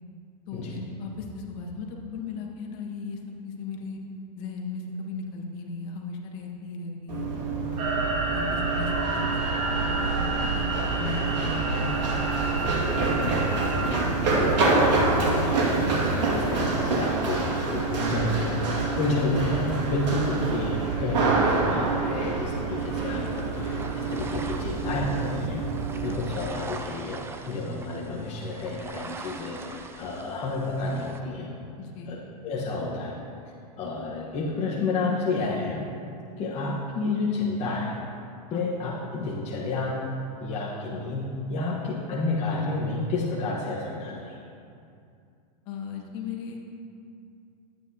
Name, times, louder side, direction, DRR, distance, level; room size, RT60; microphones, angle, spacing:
voice 1, 0.5-4.0 4.4-7.8 8.3-9.2 9.8-11.9 20.4-20.5 31.8-32.1 38.5-38.7 45.6-46.6, left 4 dB, 50° left, 0 dB, 1.5 m, -37 dB
Run, 7.1-26.2, right 3 dB, 90° right, 2.1 m, -26 dB
sound 1, 7.8-13.9, right 2 dB, 60° right, 1.5 m, -30 dB
voice 2, 13.2-13.5 13.8-25.6 26.0-31.5 32.1-32.2 32.4-33.2 33.8-35.8 36.4-38.0 38.5-40.1 40.4-44.4, left 2 dB, 30° left, -5 dB, 1.2 m, -30 dB
sound 2, 22.8-31.2, right 3 dB, 10° right, 0.4 m, -42 dB
12.0 x 9.5 x 2.8 m, 2.5 s
supercardioid pair, 135°, 21 cm